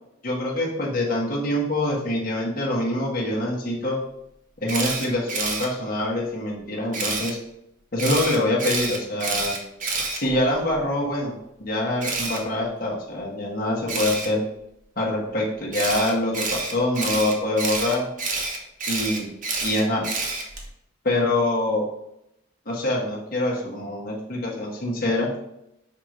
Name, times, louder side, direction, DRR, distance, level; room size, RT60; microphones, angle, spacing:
voice 1, 0.2-4.0 4.6-7.4 7.9-9.5 10.1-11.3 11.6-14.4 15.0-18.1 18.9-19.3 19.6-20.0 21.0-21.9 22.6-25.3, left 1 dB, 50° left, -3 dB, 1.4 m, -25 dB
Camera, 4.7-5.7 6.9-7.3 8.0-10.8 12.0-12.4 13.9-14.3 15.7-20.7, right 3 dB, 40° right, 1.3 m, -28 dB
5.8 x 4.7 x 5.1 m, 0.83 s
head